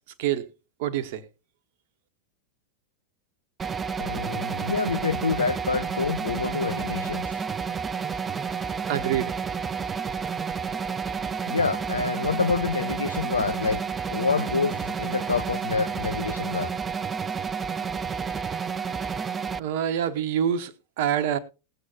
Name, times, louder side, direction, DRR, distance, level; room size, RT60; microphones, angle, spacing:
voice 1, 0.8-1.2 8.9-9.3 19.6-21.4, right 9 dB, 50° right, 1.0 m, -26 dB
sound 1, 3.6-19.6, right 6 dB, 15° right, 0.4 m, -30 dB
voice 2, 4.0-7.3 11.5-13.8 14.1-16.7, left 4 dB, 75° left, 0.7 m, -27 dB
19.5 x 8.1 x 2.7 m
figure-of-eight pair, 90°, 0 cm